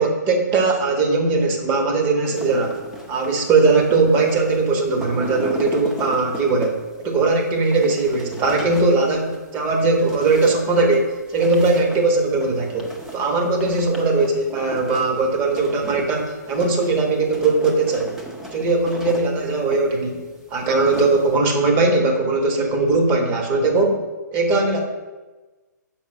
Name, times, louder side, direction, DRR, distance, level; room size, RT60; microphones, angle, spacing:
voice 1, 0.0-2.7 3.1-18.2 18.5-24.0 24.3-24.8, right 3 dB, 20° right, 2 dB, 1.2 m, -20 dB
sound 1, 2.3-21.4, right 1 dB, 5° right, 0.8 m, -36 dB
6.0 x 5.5 x 6.4 m, 1.2 s
figure-of-eight pair, 125°, 10 cm